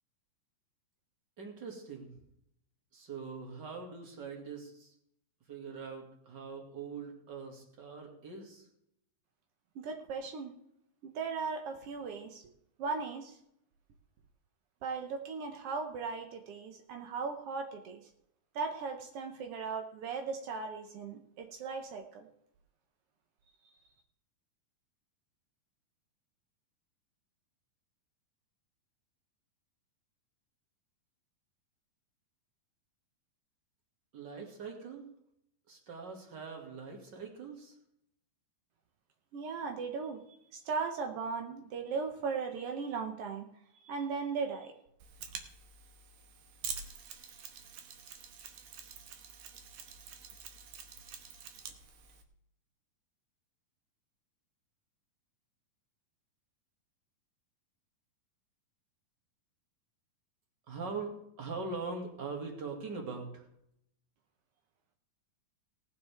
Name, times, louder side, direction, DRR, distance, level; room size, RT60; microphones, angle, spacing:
voice 1, 1.4-2.1 2.9-4.9 5.5-8.7 34.1-35.1 35.7-37.7 60.7-63.5, right 4 dB, 35° right, 1 dB, 2.3 m, -42 dB
voice 2, 9.7-10.5 11.0-12.4 12.8-13.3 14.8-18.0 18.5-22.3 39.3-40.2 40.5-43.5 43.8-44.7, right 5 dB, 80° right, 4 dB, 1.3 m, -37 dB
Mechanisms, 45.0-52.2, right 7 dB, 65° right, 2.0 m, -47 dB
18.5 x 9.4 x 3.5 m, 0.75 s
omnidirectional pair, 4.1 m